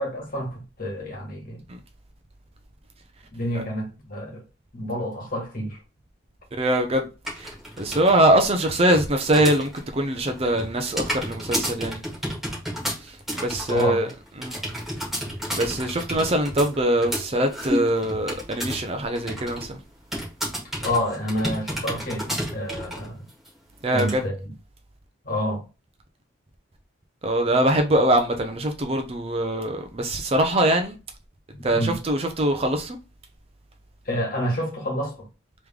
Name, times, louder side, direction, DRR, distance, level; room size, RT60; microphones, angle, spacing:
voice 1, 0.0-1.6 3.3-4.4 4.7-5.8 13.7-14.1 20.8-23.2 23.9-24.5 25.2-25.6 31.5-32.0 34.0-35.3, equal, 45° left, 1.6 m, -28 dB
voice 2, 6.6-7.1 7.4-7.5 7.8-12.1 13.0-14.1 14.4-14.6 15.6-19.8 23.8-24.2 27.2-31.0 31.6-33.0, right 1 dB, 30° right, 0.6 m, -23 dB
sound 1, 7.3-8.1 8.4-9.9 10.1-18.9 19.2-19.7 20.1-23.1 23.5-23.6 24.0-24.1, equal, ahead, 1.5 m, -31 dB
3.5 x 3.1 x 3.5 m
head